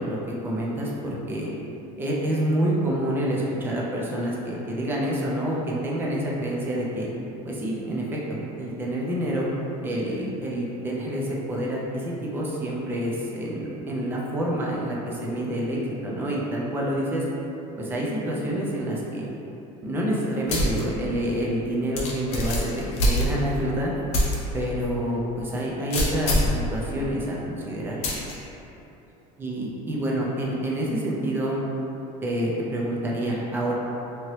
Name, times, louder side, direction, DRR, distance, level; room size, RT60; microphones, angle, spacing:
voice 1, 0.0-1.5 2.0-7.1 7.4-9.5 9.8-17.2 17.8-19.3 19.8-23.9 24.5-28.0 29.4-31.6 32.2-33.7, right 1 dB, 15° right, -4 dB, 0.3 m, -27 dB
sound 1, 20.5-20.8 21.2-21.3 22.0-23.6 24.1-24.4 24.8-24.9 25.9-26.6 28.0-28.3, left 1 dB, 40° left, 0.5 m, -24 dB
2.8 x 2.8 x 3.0 m, 3.0 s
cardioid pair, 175°, 16 cm